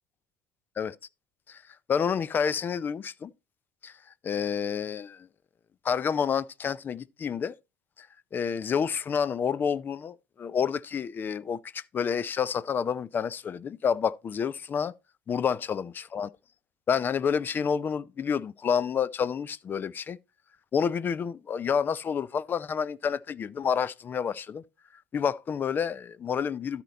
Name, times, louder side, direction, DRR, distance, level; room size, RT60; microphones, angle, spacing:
voice 1, 1.9-3.3 3.8-3.9 4.2-5.3 5.8-7.5 8.0-8.1 8.3-14.9 15.3-16.3 16.9-20.2 20.7-24.6 25.1-26.8, left 7 dB, 35° left, 0.5 m, -29 dB
13.0 x 4.4 x 4.1 m
hypercardioid pair, 75°, 6 cm